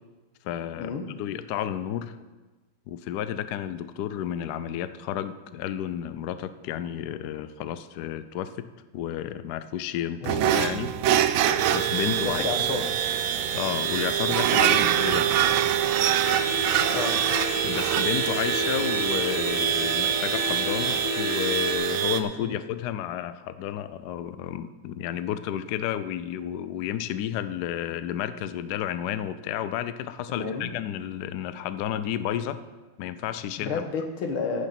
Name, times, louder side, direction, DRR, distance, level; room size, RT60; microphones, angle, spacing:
voice 1, 0.4-2.2 2.9-8.7 8.9-10.9 11.7-12.5 13.5-15.3 17.6-32.6 33.0-33.9, left 11 dB, 70° left, 13 dB, 1.0 m, -31 dB
voice 2, 10.2-10.6 12.2-12.9 16.9-17.2 22.4-22.6 30.3-30.7 33.6-34.7, left 4 dB, 90° left, 4 dB, 2.2 m, -31 dB
sound 1, 10.2-21.1, right 11 dB, 80° right, 1.4 m, -27 dB
sound 2, 11.6-22.2, right 10 dB, 60° right, 0.9 m, -27 dB
sound 3, 16.2-21.7, left 5 dB, 55° left, 1.3 m, -33 dB
15.0 x 6.6 x 5.9 m, 1.2 s
omnidirectional pair, 2.2 m